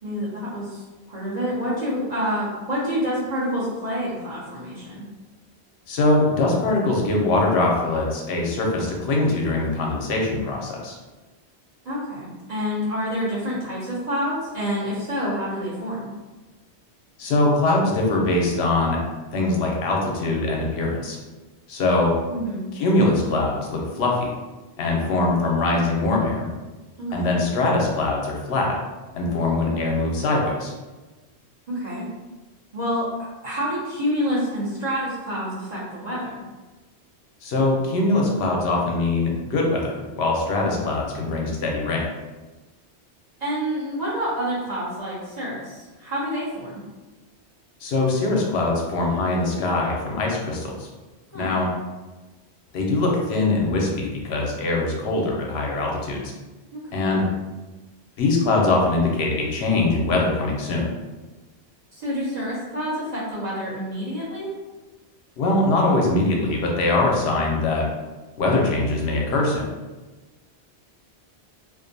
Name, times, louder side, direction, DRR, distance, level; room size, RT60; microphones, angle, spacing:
voice 1, 0.0-5.0 11.8-16.1 22.3-22.6 27.0-27.2 31.7-32.1 32.7-36.4 43.4-46.8 51.3-51.5 56.7-57.0 61.9-64.5, equal, 45° right, -9 dB, 0.7 m, -28 dB
voice 2, 5.9-11.0 17.2-19.0 19.3-21.2 21.7-22.1 22.7-24.3 24.8-26.5 27.1-28.7 29.1-30.7 37.4-42.1 47.8-50.9 51.3-51.7 52.7-56.3 56.9-57.2 58.2-60.9 65.4-67.8 68.4-69.6, left 2 dB, 75° left, -1 dB, 0.8 m, -22 dB
2.5 x 2.1 x 2.6 m, 1.2 s
omnidirectional pair, 1.1 m